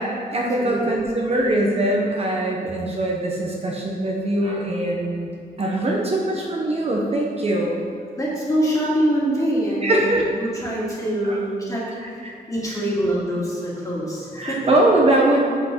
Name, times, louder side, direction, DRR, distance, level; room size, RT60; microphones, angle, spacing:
voice 1, 0.0-5.3 5.6-7.8 9.8-10.2 11.2-11.4 12.0-12.3 12.6-12.8 14.4-15.4, right 1 dB, 40° right, -2 dB, 0.9 m, -22 dB
voice 2, 8.2-11.8 12.5-14.7, right 1 dB, 20° left, -6 dB, 2.0 m, -24 dB
7.7 x 6.0 x 4.4 m, 2.4 s
wide cardioid pair, 170°, 16 cm